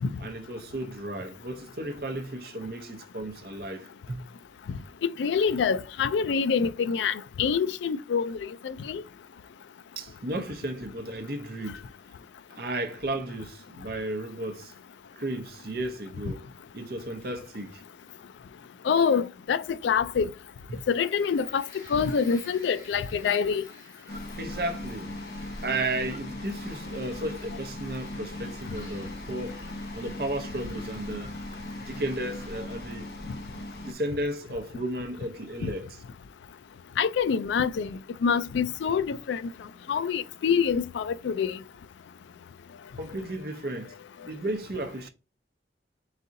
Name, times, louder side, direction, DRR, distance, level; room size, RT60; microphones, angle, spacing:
voice 1, 0.2-4.2 10.0-11.9 12.5-14.7 15.2-16.5 16.7-17.8 20.7-20.8 24.4-29.6 29.9-31.3 31.9-33.1 33.9-36.0 43.0-43.9 44.3-45.1, right 1 dB, 55° right, 0.7 m, -34 dB
voice 2, 5.2-9.0 18.8-20.3 20.9-23.6 35.6-35.7 37.0-37.9 38.2-39.4 39.9-41.6, left 6 dB, 90° left, 0.3 m, -26 dB
sound 1, 20.7-32.6, left 1 dB, 25° left, 2.0 m, -52 dB
sound 2, 24.1-33.9, left 1 dB, 60° left, 0.8 m, -39 dB
4.1 x 3.7 x 2.6 m
head